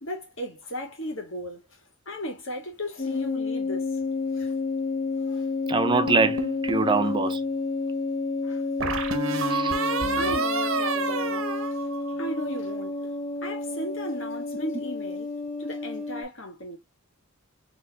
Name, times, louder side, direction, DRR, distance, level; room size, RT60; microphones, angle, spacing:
voice 1, 0.0-1.6 2.1-3.9 4.4-4.5 5.3-5.4 8.4-8.6 10.2-11.9 12.2-13.0 13.4-15.3 15.6-16.8, left 1 dB, 65° left, 1.7 m, -36 dB
sound 1, 3.0-16.2, left 3 dB, 35° left, 1.0 m, -30 dB
voice 2, 5.7-7.4 9.5-9.8, right 3 dB, 20° right, 0.4 m, -24 dB
sound 2, 6.1-6.9 8.8-12.4, right 4 dB, 75° right, 1.0 m, -29 dB
4.4 x 3.3 x 2.2 m
head